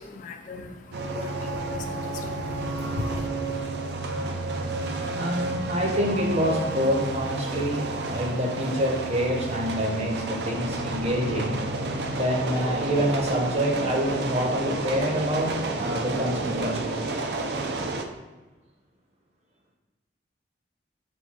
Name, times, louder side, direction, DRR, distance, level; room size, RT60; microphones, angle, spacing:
voice 1, 0.0-3.3, left 3 dB, 45° left, 5 dB, 0.3 m, -38 dB
sound 1, 0.9-18.0, right 2 dB, 70° right, 0.4 m, -30 dB
voice 2, 5.1-7.8 8.1-11.6 12.1-17.0, equal, 40° right, 0 dB, 0.7 m, -26 dB
4.2 x 2.2 x 4.2 m, 1.2 s
head